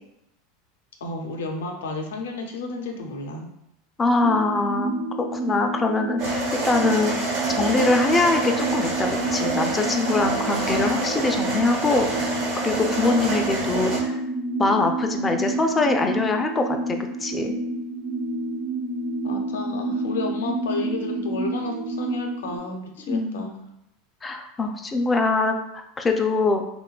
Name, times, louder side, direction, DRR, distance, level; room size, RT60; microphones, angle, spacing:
voice 1, 1.0-3.5 19.2-23.6, left 3 dB, 90° left, 3 dB, 0.5 m, -32 dB
voice 2, 4.0-5.0 5.3-7.2 7.6-12.4 12.6-14.2 14.6-17.5 23.1-23.5 24.2-26.6, left 3 dB, 20° left, 5 dB, 0.3 m, -23 dB
sound 1, 4.2-22.6, right 2 dB, 85° right, 0.9 m, -29 dB
sound 2, 6.2-14.0, right 3 dB, 55° right, 1.1 m, -28 dB
3.0 x 2.1 x 2.3 m, 0.83 s
supercardioid pair, 120°, 0 cm